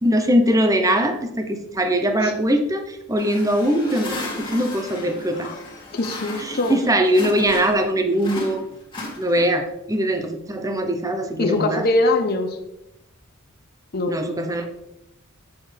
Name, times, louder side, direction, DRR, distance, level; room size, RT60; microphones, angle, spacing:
voice 1, 0.0-5.5 6.4-8.6 9.2-11.9 14.1-14.7, equal, 15° right, 6 dB, 0.8 m, -21 dB
sound 1, 3.1-7.9 8.2-9.7, left 2 dB, 25° left, 2.0 m, -35 dB
voice 2, 5.9-6.8 11.4-12.5 13.9-14.1, left 2 dB, 45° left, 5 dB, 0.8 m, -22 dB
8.0 x 6.9 x 3.4 m, 0.87 s
head